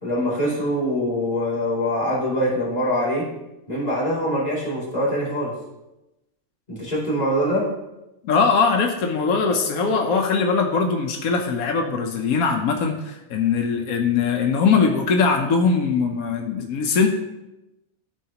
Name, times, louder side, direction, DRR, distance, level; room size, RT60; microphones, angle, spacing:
voice 1, 0.0-3.3 3.7-5.5 6.7-7.7, equal, 30° left, -7 dB, 2.8 m, -23 dB
voice 2, 8.2-17.1, left 5 dB, 90° left, 3 dB, 1.2 m, -21 dB
13.0 x 4.6 x 2.9 m, 0.96 s
omnidirectional pair, 1.4 m